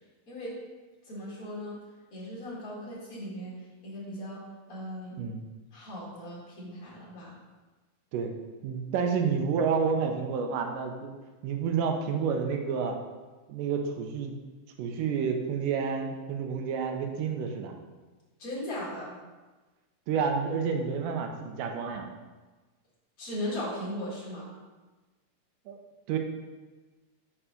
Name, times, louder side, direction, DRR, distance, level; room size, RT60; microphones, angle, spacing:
voice 1, 1.0-1.8 2.1-3.6 3.8-4.4 4.7-5.2 5.7-7.4 18.4-19.2 23.2-24.6, left 1 dB, 35° left, -6 dB, 1.7 m, -37 dB
voice 2, 8.6-11.2 11.4-13.0 13.5-14.3 14.8-17.7 20.1-22.1 25.7-25.8 26.1-26.2, right 6 dB, 80° right, 4 dB, 2.2 m, -29 dB
5.5 x 4.8 x 5.0 m, 1.2 s
omnidirectional pair, 3.9 m